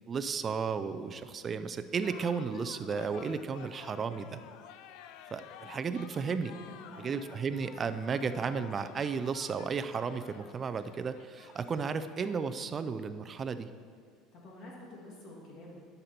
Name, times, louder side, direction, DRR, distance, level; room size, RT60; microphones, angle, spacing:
voice 1, 0.1-4.4 5.3-6.5 7.0-13.7, right 5 dB, 25° right, 10 dB, 0.4 m, -34 dB
sound 1, 2.0-12.7, left 10 dB, 65° left, 0.4 m, -52 dB
voice 2, 6.5-7.4 14.3-15.8, left 1 dB, 45° left, -3 dB, 2.4 m, -49 dB
11.5 x 6.7 x 4.4 m, 2.2 s
cardioid pair, 160°, 0 cm